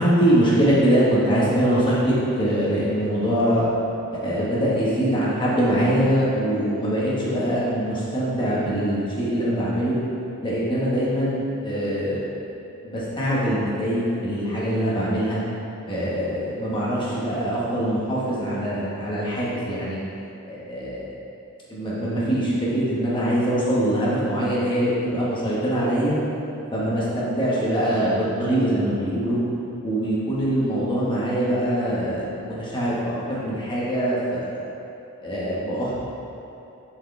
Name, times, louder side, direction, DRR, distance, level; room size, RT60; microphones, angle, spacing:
voice 1, 0.0-3.7 4.1-10.0 10.4-12.3 12.8-15.4 15.9-20.0 20.4-21.1 21.7-26.2 26.7-29.4 29.8-34.7 35.2-36.0, equal, 20° left, -8 dB, 1.3 m, -23 dB
7.6 x 4.8 x 3.3 m, 2.9 s
head